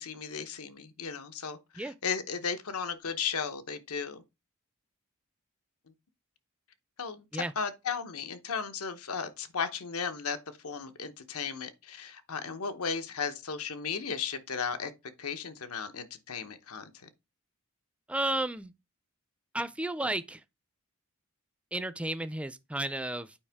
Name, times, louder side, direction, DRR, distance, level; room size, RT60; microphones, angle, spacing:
voice 1, 0.0-4.2 7.0-14.9 15.2-17.1, left 6 dB, 85° left, 0.9 m, -35 dB
voice 2, 18.1-18.7 19.5-20.4 21.7-23.3, right 1 dB, 5° right, 0.4 m, -32 dB
8.6 x 5.1 x 3.5 m
head